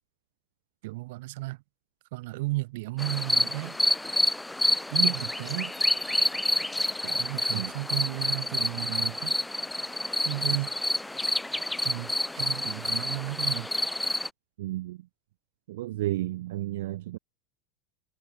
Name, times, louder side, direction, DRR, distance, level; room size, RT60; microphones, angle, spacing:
voice 1, 0.8-1.6 2.1-3.8 4.9-5.7 7.0-9.4 10.2-10.7 11.8-13.7, right 21 dB, 60° right, 2.7 m, -33 dB
sound 1, 3.0-14.3, left 1 dB, 5° left, 0.4 m, -28 dB
voice 2, 14.6-15.0 15.7-17.2, right 16 dB, 75° right, 0.7 m, -32 dB
supercardioid pair, 175°, 0 cm